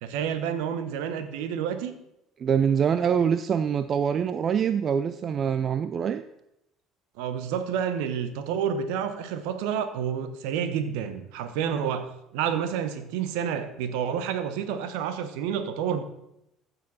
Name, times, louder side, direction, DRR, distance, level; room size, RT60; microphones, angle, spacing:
voice 1, 0.0-1.9 7.2-16.0, right 8 dB, 70° right, 10 dB, 1.1 m, -29 dB
voice 2, 2.4-6.2, right 7 dB, 45° right, 12 dB, 0.5 m, -24 dB
14.5 x 7.0 x 4.2 m, 0.85 s
hypercardioid pair, 60°, 0 cm